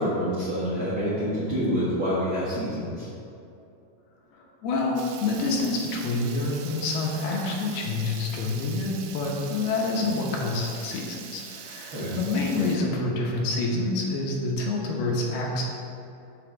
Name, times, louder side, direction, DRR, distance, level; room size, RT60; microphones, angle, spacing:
voice 1, 0.0-3.1 11.9-12.2, equal, 50° right, -10 dB, 1.7 m, -27 dB
voice 2, 4.6-15.6, left 3 dB, 75° left, -2 dB, 2.9 m, -27 dB
Water tap faucet / Liquid, 5.0-12.8, right 8 dB, 85° right, 2.8 m, -43 dB
7.1 x 5.7 x 6.8 m, 2.7 s
omnidirectional pair, 4.9 m